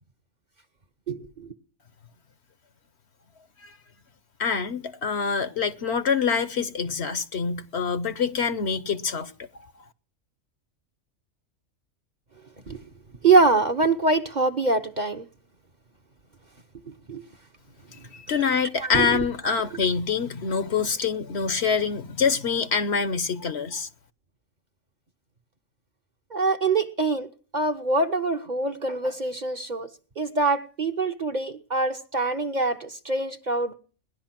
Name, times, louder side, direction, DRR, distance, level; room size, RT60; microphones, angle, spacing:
voice 1, 1.1-1.5 12.7-12.8 13.2-15.2 16.9-17.2 18.8-19.8 26.3-27.3 27.5-29.9 30.2-33.7, right 3 dB, 35° right, 1.0 m, -24 dB
voice 2, 4.4-9.3 18.1-23.9, left 6 dB, 55° left, 1.1 m, -25 dB
18.5 x 11.0 x 5.9 m
omnidirectional pair, 1.4 m